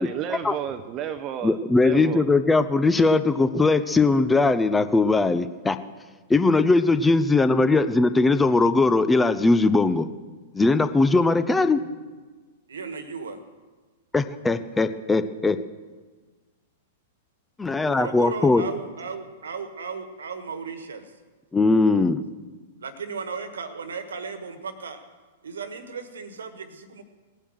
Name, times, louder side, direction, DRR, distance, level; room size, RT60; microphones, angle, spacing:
voice 1, 0.0-2.3, right 9 dB, 30° right, 9 dB, 0.8 m, -32 dB
voice 2, 1.4-5.8 6.3-10.1 10.5-11.8 14.1-15.6 17.6-18.6 21.5-22.2, left 3 dB, 10° left, 12 dB, 0.7 m, -20 dB
voice 3, 12.7-13.4 17.8-21.1 22.8-25.0 25.4-27.0, right 5 dB, 70° right, 10 dB, 1.6 m, -35 dB
18.5 x 10.0 x 6.4 m, 1.4 s
figure-of-eight pair, 100°, 0 cm